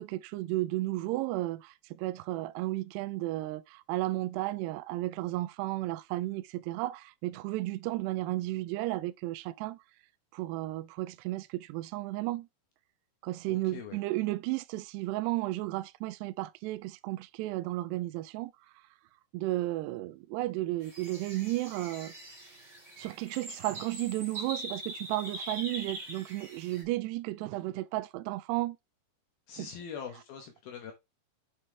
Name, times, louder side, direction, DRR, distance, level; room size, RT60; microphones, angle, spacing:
voice 1, 0.0-9.8 10.3-12.5 13.2-18.5 19.3-22.1 23.0-28.8 29.6-29.7, right 17 dB, 80° right, 2.5 m, -33 dB
voice 2, 13.5-14.0 29.5-30.9, left 7 dB, 70° left, 2.7 m, -43 dB
sound 1, 20.8-26.8, right 1 dB, 30° right, 2.6 m, -43 dB
8.5 x 5.5 x 3.4 m
omnidirectional pair, 5.2 m